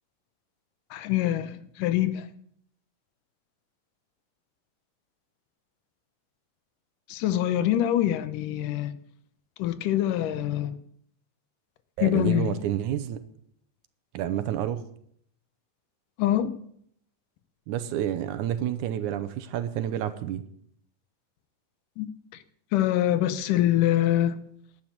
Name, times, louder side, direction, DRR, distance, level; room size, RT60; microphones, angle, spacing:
voice 1, 0.9-2.3 7.1-8.9 9.6-10.7 12.0-12.6 16.2-16.5 22.0-22.1 22.7-24.3, left 12 dB, 80° left, 2.4 m, -24 dB
voice 2, 12.0-13.2 14.1-14.8 17.7-20.4, right 11 dB, 75° right, 2.2 m, -29 dB
12.0 x 8.8 x 9.6 m
omnidirectional pair, 3.8 m